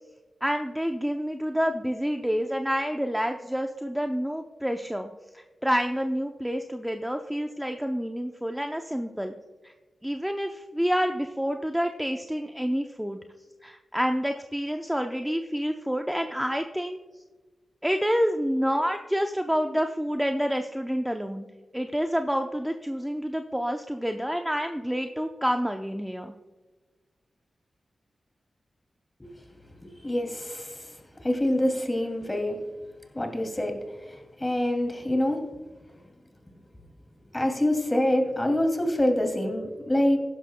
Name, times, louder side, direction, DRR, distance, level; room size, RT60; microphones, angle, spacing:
voice 1, 0.4-9.3 9.6-9.7 10.0-13.2 13.6-17.0 17.8-21.5 21.7-26.3, equal, 5° right, 5 dB, 0.7 m, -28 dB
voice 2, 29.8-30.9 31.2-32.6 33.1-35.4 37.3-40.2, left 1 dB, 20° left, 4 dB, 2.5 m, -26 dB
15.5 x 11.0 x 2.2 m, 1.3 s
cardioid pair, 55°, 0 cm